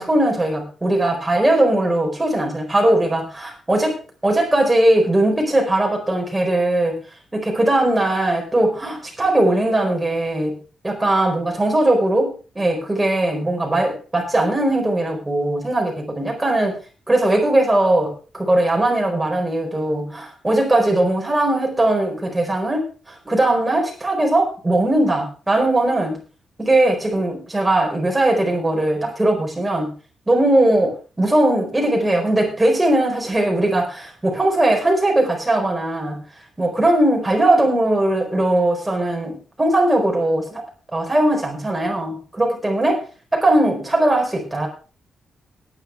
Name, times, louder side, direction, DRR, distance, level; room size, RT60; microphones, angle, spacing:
voice 1, 0.0-7.0 7.3-10.6 10.8-16.8 17.1-26.2 26.6-29.9 30.3-36.2 36.6-40.6 40.9-43.0 43.3-44.7, right 1 dB, 10° right, 1 dB, 4.9 m, -19 dB
18.0 x 10.5 x 3.5 m, 0.36 s
wide cardioid pair, 160°, 0 cm